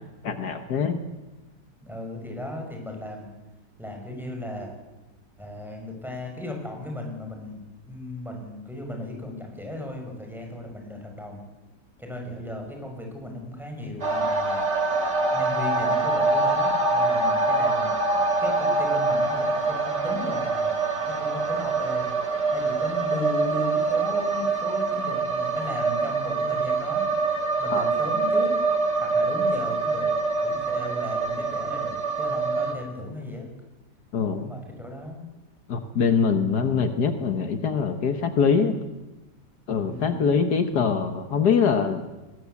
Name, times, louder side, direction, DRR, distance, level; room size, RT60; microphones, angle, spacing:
voice 1, 0.2-1.0 27.7-27.8 34.1-34.5 35.7-38.8 39.7-42.0, left 6 dB, 70° left, 8 dB, 1.9 m, -23 dB
voice 2, 1.8-3.3 3.8-4.7 5.4-11.4 12.0-14.6 15.3-20.7 21.0-22.1 22.5-27.2 27.6-28.5 29.0-30.1 30.4-33.5 34.4-35.2 39.8-40.2, left 1 dB, ahead, 1 dB, 6.6 m, -36 dB
sound 1, 14.0-32.7, right 3 dB, 85° right, 3.3 m, -25 dB
22.5 x 21.0 x 8.4 m, 1.1 s
omnidirectional pair, 1.8 m